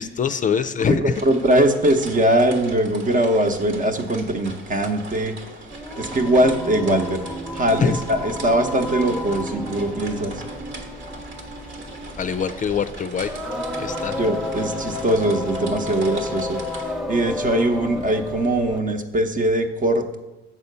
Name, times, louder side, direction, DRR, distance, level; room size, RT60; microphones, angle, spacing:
voice 1, 0.0-1.2 7.8-8.0 12.2-13.3 13.8-14.2, left 6 dB, 40° left, 10 dB, 0.4 m, -23 dB
voice 2, 0.9-5.3 6.0-7.2 7.5-10.3 14.2-16.6 16.8-20.2, right 1 dB, 40° right, 6 dB, 0.9 m, -21 dB
sound 1, 1.1-16.8, right 2 dB, 70° right, 1.4 m, -40 dB
Singing, 5.7-18.9, left 1 dB, ahead, 0.7 m, -32 dB
7.6 x 4.2 x 6.7 m, 1.1 s
cardioid pair, 90°, 20 cm